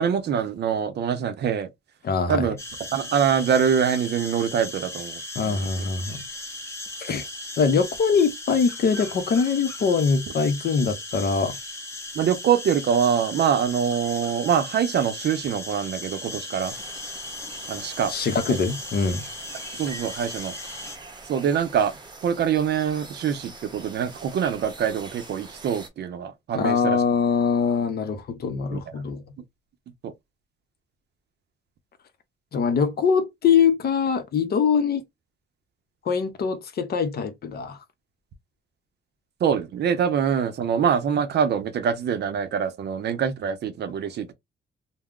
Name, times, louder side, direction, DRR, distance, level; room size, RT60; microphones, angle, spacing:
voice 1, 0.0-1.7 2.3-2.6 2.9-5.6 12.2-16.7 17.7-18.1 18.5-18.6 19.7-20.5 21.3-21.9 22.2-27.0 28.7-28.8 30.0-30.1 39.4-44.3, right 8 dB, 60° right, 0.5 m, -24 dB
voice 2, 2.0-2.5 5.4-6.2 7.0-7.3 7.6-11.5 18.1-19.2 26.5-29.2 32.5-35.0 36.1-37.8, left 5 dB, 50° left, 0.6 m, -23 dB
sound 1, 2.6-21.0, left 2 dB, 15° left, 0.7 m, -37 dB
sound 2, 16.6-25.9, right 3 dB, 20° right, 0.7 m, -43 dB
2.3 x 2.0 x 3.5 m
cardioid pair, 90°, 20 cm